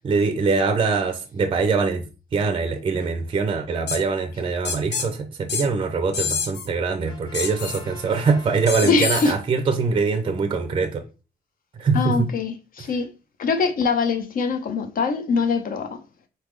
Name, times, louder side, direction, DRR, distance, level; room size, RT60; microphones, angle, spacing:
voice 1, 0.0-2.0 2.3-11.0 11.8-12.3, right 4 dB, 30° right, 0.5 m, -23 dB
sound 1, 3.9-4.0 4.7-5.1 5.5-5.7 6.1-6.7 7.3-7.8 8.7-9.3, left 6 dB, 85° left, 0.9 m, -27 dB
Brass instrument, 7.0-9.7, left 2 dB, 25° left, 1.0 m, -45 dB
voice 2, 8.8-9.3 11.9-13.1 13.4-16.0, left 4 dB, 55° left, 0.7 m, -23 dB
4.2 x 3.5 x 3.2 m
wide cardioid pair, 165°, 17 cm